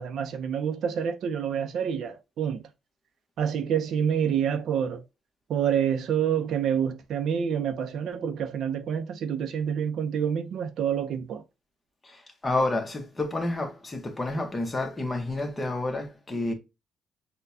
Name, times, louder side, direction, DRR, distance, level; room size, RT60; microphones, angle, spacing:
voice 1, 0.0-2.6 3.4-5.0 5.5-11.4, right 8 dB, 70° right, 0.5 m, -27 dB
voice 2, 12.0-16.5, left 2 dB, 20° left, 0.9 m, -29 dB
6.5 x 2.2 x 2.6 m
cardioid pair, 125°, 0 cm